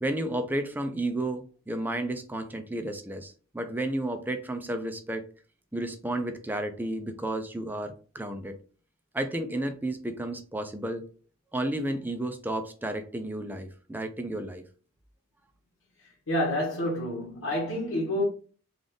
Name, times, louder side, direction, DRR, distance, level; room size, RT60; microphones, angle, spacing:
voice 1, 0.0-5.3 5.7-8.5 9.1-11.1 11.5-14.6, right 1 dB, 10° right, 0.4 m, -32 dB
voice 2, 16.3-18.2, left 1 dB, 85° left, 1.5 m, -28 dB
3.9 x 2.4 x 3.4 m
head